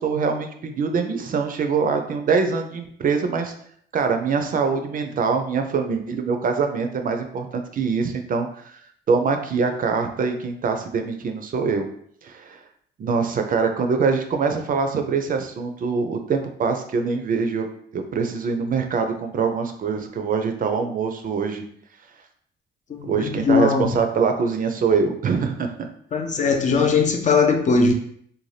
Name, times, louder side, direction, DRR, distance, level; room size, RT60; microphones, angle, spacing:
voice 1, 0.0-3.5 3.9-8.8 9.1-11.9 12.2-12.6 13.0-17.7 17.9-21.6 23.0-25.7, right 5 dB, 45° right, 0.4 m, -24 dB
voice 2, 22.9-23.9 26.1-27.9, left 4 dB, 40° left, 0.5 m, -20 dB
2.6 x 2.2 x 3.2 m
cardioid pair, 90°, 20 cm